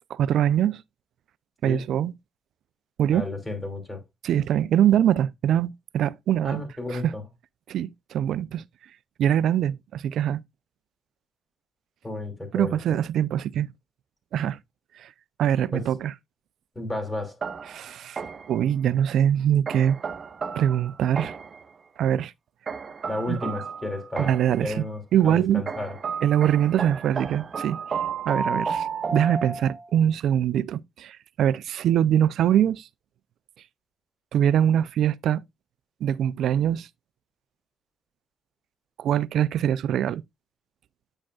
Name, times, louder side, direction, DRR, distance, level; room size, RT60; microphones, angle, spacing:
voice 1, 0.1-0.8 1.6-2.1 3.0-3.3 4.2-7.1 7.7-8.6 9.2-10.4 12.5-13.7 14.3-14.6 15.0-15.1 15.4-16.1 17.7-18.2 18.5-20.0 20.6-21.3 22.0-22.3 23.3-23.4 24.2-24.9 25.1-25.6 26.2-27.8 28.3-32.9 34.3-35.4 36.0-36.9 39.0-40.2, right 10 dB, 75° right, 0.4 m, -23 dB
voice 2, 3.1-4.0 6.4-7.2 12.0-12.8 15.7-15.8 16.7-17.3 23.1-25.9, left 2 dB, 15° left, 2.8 m, -32 dB
sound 1, 17.4-18.6 19.7-21.6 22.7-24.6 25.7-29.9, right 5 dB, 45° right, 0.8 m, -32 dB
8.8 x 6.3 x 2.3 m
cardioid pair, 90°, 0 cm